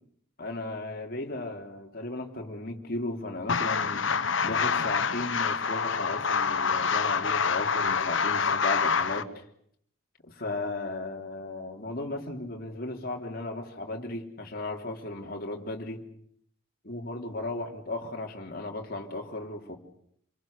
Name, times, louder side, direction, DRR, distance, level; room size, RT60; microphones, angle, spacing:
voice 1, 0.4-4.1 4.4-9.4 10.2-16.0 16.8-19.8, left 2 dB, 45° left, 2 dB, 3.3 m, -36 dB
sound 1, 3.5-9.2, left 5 dB, 60° left, 1.0 m, -26 dB
27.5 x 22.5 x 6.6 m, 0.67 s
head